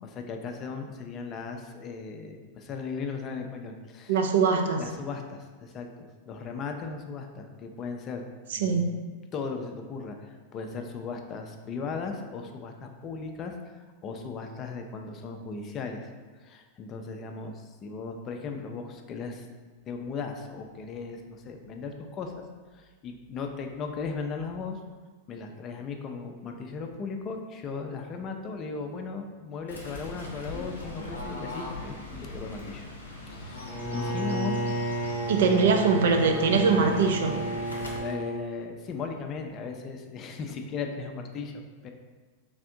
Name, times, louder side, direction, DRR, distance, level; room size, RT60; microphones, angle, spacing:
voice 1, 0.0-4.2 4.8-5.9 6.2-8.2 8.5-9.0 9.3-16.1 16.3-19.5 19.9-22.5 22.7-24.8 25.3-32.9 33.3-34.6 35.4-35.6 38.0-41.9, left 4 dB, 30° left, 4 dB, 0.4 m, -37 dB
voice 2, 4.1-4.8 8.5-8.8 35.3-37.4, right 5 dB, 60° right, 4 dB, 0.4 m, -22 dB
Fowl / Bird, 29.7-38.0, left 1 dB, 75° left, 0.6 m, -40 dB
Bowed string instrument, 33.7-38.5, right 1 dB, 15° left, 0.9 m, -32 dB
3.3 x 2.5 x 3.6 m, 1.4 s
figure-of-eight pair, 90°, 0 cm